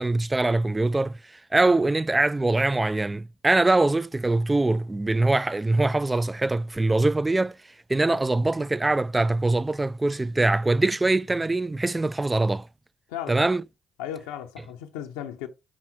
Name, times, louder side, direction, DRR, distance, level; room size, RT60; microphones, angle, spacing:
voice 1, 0.0-7.6 7.9-12.7 13.3-13.6, right 2 dB, 20° right, 0.4 m, -23 dB
voice 2, 13.1-13.5 14.0-15.5, left 10 dB, 90° left, 0.7 m, -35 dB
6.0 x 3.7 x 5.9 m
hypercardioid pair, 50°, 0 cm